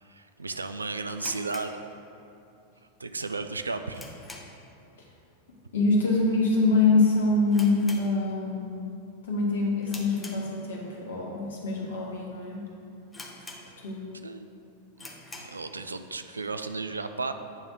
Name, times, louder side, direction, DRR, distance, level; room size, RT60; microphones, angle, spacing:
voice 1, 0.0-1.8 3.0-4.0 14.1-14.5 15.3-17.3, right 3 dB, 80° right, 8 dB, 0.4 m, -34 dB
sound 1, 1.1-2.5 2.8-2.9 3.4-4.8 5.0-5.3 5.6-5.7 6.4-6.7 7.0-7.1 7.5-8.6 9.0-9.3 9.8-10.9 11.5-11.6 12.2-12.3 12.6-12.7 13.1-14.1 14.4-14.5 14.9-15.6, left 2 dB, 10° left, 0.8 m, -45 dB
voice 2, 5.7-8.9 9.3-12.7 13.8-14.0, left 3 dB, 65° left, -2 dB, 1.4 m, -25 dB
8.7 x 3.5 x 6.1 m, 2.7 s
figure-of-eight pair, 90°, 0 cm